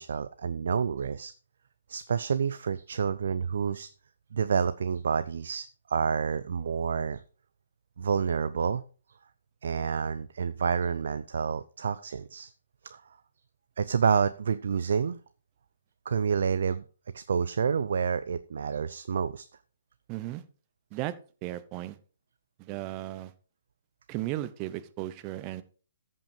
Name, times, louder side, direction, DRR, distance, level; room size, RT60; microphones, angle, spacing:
voice 1, 0.0-1.3 1.9-3.9 4.3-7.2 8.0-8.8 9.6-12.5 12.8-13.0 13.8-15.2 16.1-16.8 17.1-19.5, right 6 dB, 65° right, 13 dB, 0.5 m, -28 dB
voice 2, 20.1-20.4 20.9-21.1 21.4-22.0 22.6-23.3 24.1-25.6, right 15 dB, 30° right, 15 dB, 0.9 m, -35 dB
14.0 x 5.6 x 5.1 m, 0.38 s
figure-of-eight pair, 135°, 0 cm